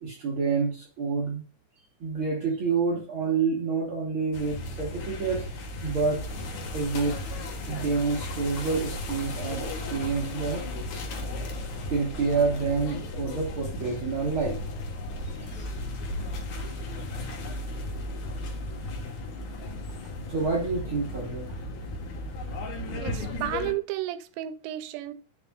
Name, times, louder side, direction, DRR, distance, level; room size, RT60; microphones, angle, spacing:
voice 1, 0.0-1.4 2.0-5.4 5.8-6.2 6.7-7.2 7.7-10.6 11.9-14.6 15.5-15.7 20.3-21.5, right 4 dB, 55° right, 1.6 m, -28 dB
sound 1, 4.3-23.7, left 1 dB, 65° left, 2.4 m, -35 dB
voice 2, 23.0-25.1, right 14 dB, 90° right, 2.4 m, -33 dB
10.5 x 4.9 x 2.3 m
omnidirectional pair, 4.0 m